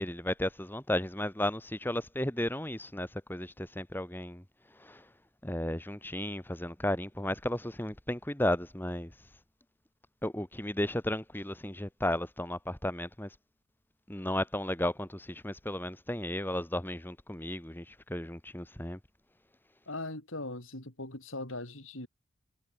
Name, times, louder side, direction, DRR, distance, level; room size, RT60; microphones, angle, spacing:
voice 1, 0.0-4.4 4.8-5.1 5.4-9.1 10.2-13.3 14.1-19.0, left 1 dB, 10° left, 1.7 m, -34 dB
voice 2, 19.9-22.1, left 2 dB, 80° left, 6.3 m, -40 dB
head